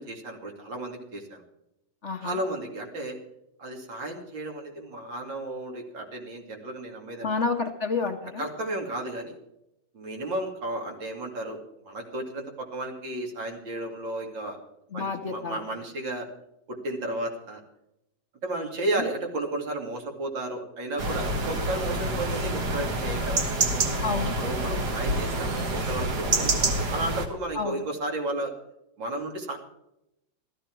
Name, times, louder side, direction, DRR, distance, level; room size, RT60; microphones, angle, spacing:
voice 1, 0.0-1.4 2.2-3.2 3.6-7.3 8.4-9.4 9.9-14.6 14.9-16.3 16.7-17.6 18.4-23.4 24.4-28.5 29.0-29.6, right 1 dB, 75° right, 2 dB, 3.2 m, -33 dB
voice 2, 2.0-2.4 7.2-8.4 14.9-15.6 24.0-24.4 27.5-27.9, left 4 dB, 45° left, 4 dB, 1.1 m, -29 dB
sound 1, 21.0-27.3, right 2 dB, 60° right, 2.1 m, -27 dB
15.0 x 13.5 x 4.6 m, 0.85 s
omnidirectional pair, 2.1 m